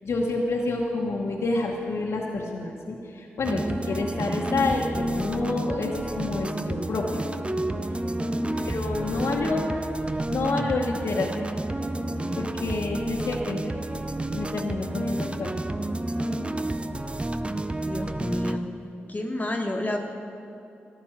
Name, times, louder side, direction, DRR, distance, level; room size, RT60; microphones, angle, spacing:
voice 1, 0.0-7.2 8.6-9.8 10.3-11.3 12.3-14.0 14.3-15.6, left 3 dB, 75° left, -3 dB, 1.3 m, -28 dB
sound 1, 3.4-18.6, right 1 dB, 25° right, 0.7 m, -30 dB
voice 2, 8.4-8.7 17.7-18.7 19.1-20.0, left 1 dB, 35° left, 1 dB, 1.5 m, -30 dB
13.0 x 10.5 x 7.4 m, 2.8 s
supercardioid pair, 40°, 5 cm